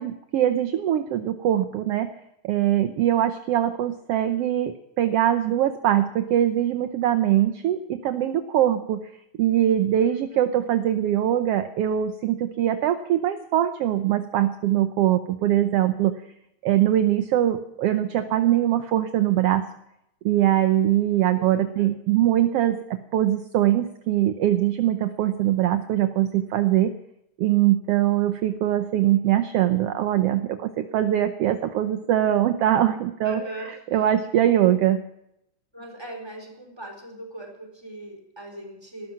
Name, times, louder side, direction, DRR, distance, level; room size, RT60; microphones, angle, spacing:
voice 1, 0.0-2.1 2.4-9.0 9.4-16.2 16.6-19.7 20.2-26.9 27.4-33.4 33.9-35.0, right 12 dB, 70° right, 9 dB, 1.5 m, -22 dB
voice 2, 10.0-10.4 21.3-21.9 33.2-33.8 35.7-39.1, right 1 dB, 10° right, 3 dB, 4.1 m, -40 dB
19.0 x 13.0 x 5.8 m, 0.79 s
omnidirectional pair, 3.5 m